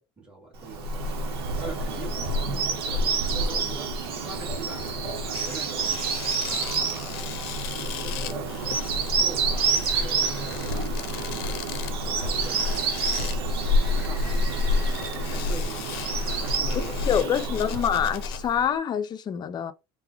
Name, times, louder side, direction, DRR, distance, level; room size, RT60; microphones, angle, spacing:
voice 1, 0.0-6.0 6.5-7.2 7.7-11.6 12.0-16.1 16.4-18.1, right 3 dB, 5° right, 2.0 m, -43 dB
Bird vocalization bird call bird song, 0.6-18.6, right 2 dB, 85° right, 0.8 m, -27 dB
sound 1, 4.9-5.0 5.3-18.4, left 11 dB, 80° left, 0.6 m, -39 dB
voice 2, 17.0-19.7, left 8 dB, 35° left, 0.6 m, -26 dB
3.7 x 2.2 x 2.8 m
supercardioid pair, 95°, 13 cm